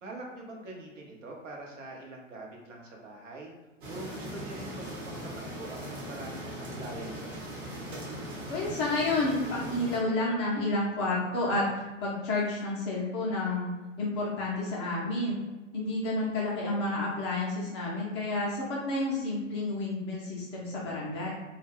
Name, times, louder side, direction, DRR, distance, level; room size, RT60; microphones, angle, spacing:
voice 1, 0.0-3.5 3.9-5.2 5.5-7.6, right 2 dB, 75° right, -1 dB, 0.8 m, -44 dB
sound 1, 3.8-10.0, right 1 dB, 40° right, 1.0 m, -39 dB
voice 2, 8.5-15.4 15.7-21.3, left 2 dB, 25° left, -4 dB, 0.4 m, -30 dB
2.2 x 2.1 x 3.2 m, 1.1 s
figure-of-eight pair, 110°, 39 cm